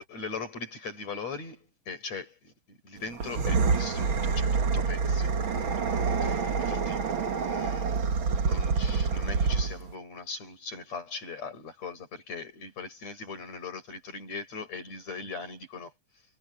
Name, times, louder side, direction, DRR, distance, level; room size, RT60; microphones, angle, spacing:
voice 1, 0.0-5.3 6.2-7.0 7.4-8.0 8.3-15.9, left 4 dB, 55° left, 8.2 m, -40 dB
sound 1, 3.1-9.9, right 5 dB, 45° right, 2.1 m, -27 dB
omnidirectional pair, 3.6 m